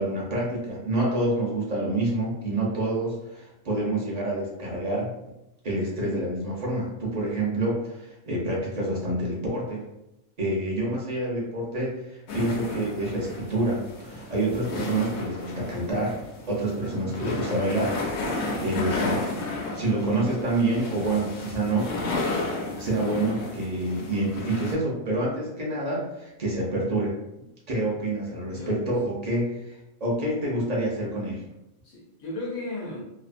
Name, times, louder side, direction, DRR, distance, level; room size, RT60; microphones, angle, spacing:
voice 1, 0.0-5.1 5.6-9.8 10.4-16.2 16.5-19.2 19.7-21.9 22.8-27.1 27.7-31.4, right 1 dB, 45° right, -4 dB, 0.5 m, -27 dB
sound 1, 12.3-24.7, left 2 dB, 65° left, 0.7 m, -33 dB
voice 2, 31.8-33.0, left 2 dB, 90° left, -2 dB, 1.2 m, -36 dB
2.7 x 2.1 x 2.5 m, 0.90 s
omnidirectional pair, 1.4 m